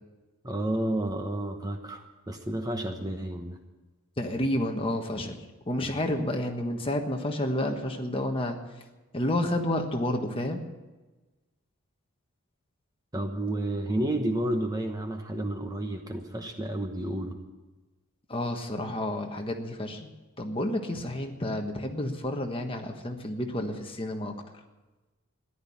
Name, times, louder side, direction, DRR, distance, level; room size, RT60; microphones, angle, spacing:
voice 1, 0.4-3.6 13.1-17.4, right 1 dB, 15° right, 4 dB, 1.0 m, -31 dB
voice 2, 4.2-5.3 5.7-8.6 9.1-10.6 18.3-20.1 20.4-24.3, left 1 dB, 25° left, 4 dB, 1.4 m, -30 dB
14.5 x 11.5 x 8.6 m, 1.2 s
head